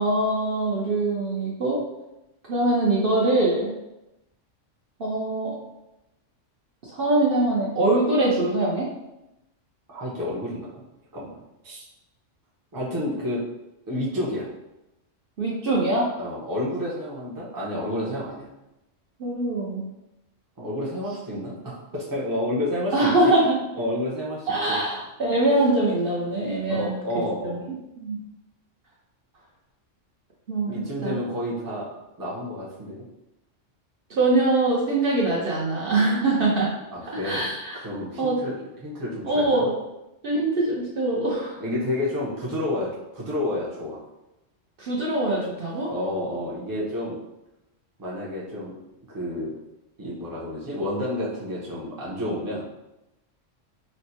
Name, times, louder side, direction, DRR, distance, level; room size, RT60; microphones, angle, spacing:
voice 1, 0.0-1.8 2.5-3.7 5.0-5.6 6.8-8.9 15.4-16.1 19.2-19.9 22.9-23.6 24.5-26.9 27.4-27.6 28.0-28.2 30.5-30.7 31.0-31.2 34.1-36.7 37.2-37.8 38.2-38.4 39.2-39.7 40.2-41.6 44.8-45.9, right 2 dB, 55° right, -5 dB, 0.8 m, -23 dB
voice 2, 9.9-10.8 11.1-11.8 12.7-13.4 13.9-14.5 16.2-18.5 20.6-23.3 23.7-24.8 26.7-27.7 30.7-31.9 32.2-33.0 36.9-37.5 37.7-38.5 38.8-39.7 41.6-44.0 45.9-47.2 48.0-48.7 49.1-49.5 50.0-52.6, left 1 dB, 20° right, -6 dB, 0.6 m, -30 dB
4.3 x 2.1 x 2.7 m, 0.90 s
omnidirectional pair, 1.3 m